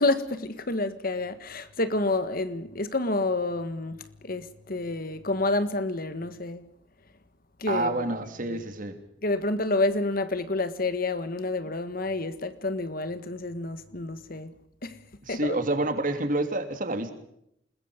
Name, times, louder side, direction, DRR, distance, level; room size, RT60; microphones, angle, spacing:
voice 1, 0.0-4.0 4.2-6.7 7.6-8.1 8.4-8.6 9.2-14.5 14.8-15.0 15.3-15.6, left 2 dB, 50° left, 1.6 m, -29 dB
voice 2, 7.7-9.0 15.3-17.1, right 2 dB, 45° right, 3.2 m, -28 dB
29.0 x 21.0 x 5.2 m
head